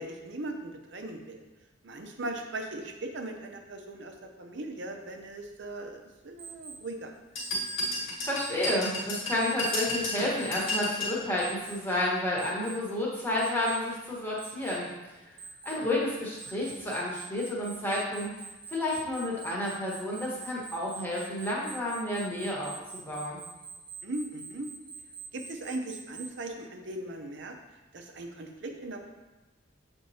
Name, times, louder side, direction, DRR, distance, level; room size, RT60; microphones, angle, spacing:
voice 1, 0.0-1.4 1.8-7.2 24.0-24.7 25.3-27.6 27.9-29.1, right 2 dB, 65° right, 4 dB, 0.7 m, -39 dB
Alarm, 6.4-6.8 7.4-7.8 8.4-8.8 9.4-9.8 10.4-10.8 11.4-11.8 12.4-12.8 13.4-13.8 14.4-14.8 15.4-15.8 16.4-26.3, right 6 dB, 25° right, 0.7 m, -44 dB
sound 1, 7.4-11.2, left 1 dB, 85° left, 2.0 m, -32 dB
voice 2, 8.0-14.9 15.2-15.3 15.6-18.3 18.7-23.4, left 1 dB, 10° left, -5 dB, 1.2 m, -31 dB
7.8 x 4.3 x 2.8 m, 1.1 s
head